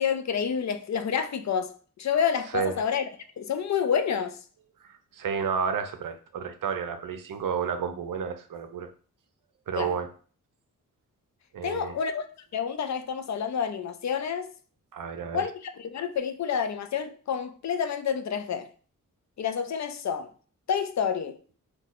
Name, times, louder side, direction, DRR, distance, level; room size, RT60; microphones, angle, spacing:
voice 1, 0.0-1.7 2.0-3.1 3.4-4.4 9.7-10.0 11.6-12.2 12.5-14.5 15.3-18.7 19.4-20.3 20.7-21.4, left 7 dB, 55° left, 0.4 m, -28 dB
voice 2, 5.1-8.9 9.7-10.1 11.5-12.0 14.9-15.4, right 6 dB, 70° right, 0.6 m, -31 dB
4.0 x 2.3 x 2.4 m
cardioid pair, 50°, 35 cm